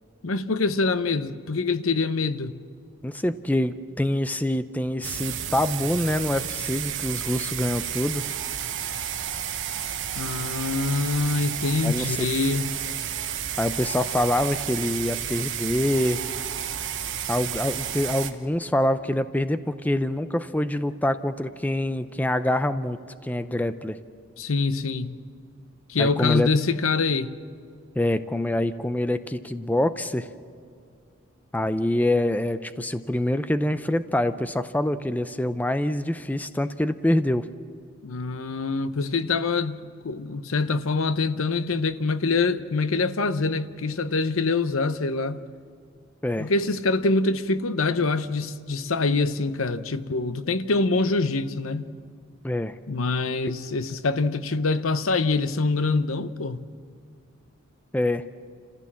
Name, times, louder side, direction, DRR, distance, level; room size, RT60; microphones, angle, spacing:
voice 1, 0.2-2.6 10.1-12.7 24.4-25.2 25.9-27.3 38.0-45.4 46.4-51.9 52.9-56.6, left 3 dB, 85° left, 0.8 m, -25 dB
voice 2, 3.0-8.3 11.8-12.3 13.6-16.3 17.3-24.0 26.0-26.5 28.0-30.3 31.5-37.5 46.2-46.5 52.4-52.8 57.9-58.2, left 1 dB, 10° left, 0.5 m, -25 dB
sound 1, 5.0-18.3, right 9 dB, 60° right, 1.2 m, -31 dB
28.5 x 15.0 x 7.4 m
head